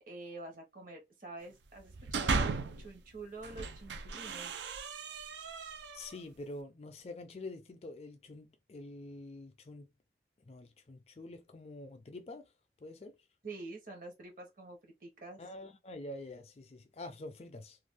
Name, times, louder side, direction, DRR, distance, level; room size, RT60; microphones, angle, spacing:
voice 1, 0.1-4.6 13.4-15.4, right 2 dB, 50° right, 1.0 m, -47 dB
sound 1, 1.8-2.9 3.4-6.2, right 4 dB, 80° right, 0.4 m, -36 dB
voice 2, 5.9-9.9 10.4-12.5 12.8-13.2 15.4-17.8, left 2 dB, 35° left, 0.4 m, -46 dB
2.5 x 2.2 x 3.4 m
head